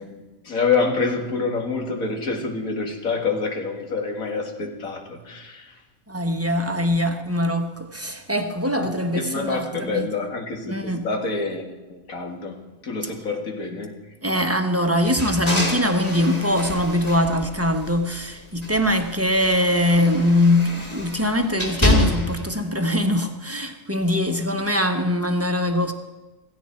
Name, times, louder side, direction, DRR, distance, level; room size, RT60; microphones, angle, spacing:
voice 1, 0.0-5.8 6.6-6.9 8.8-14.0, left 4 dB, 80° left, 2.4 m, -27 dB
voice 2, 6.1-10.1 10.7-11.1 14.2-25.9, left 1 dB, 10° right, 0.9 m, -22 dB
sound 1, 15.0-18.2 18.6-22.5, left 1 dB, 30° left, 2.9 m, -27 dB
16.0 x 15.5 x 4.4 m
omnidirectional pair, 1.4 m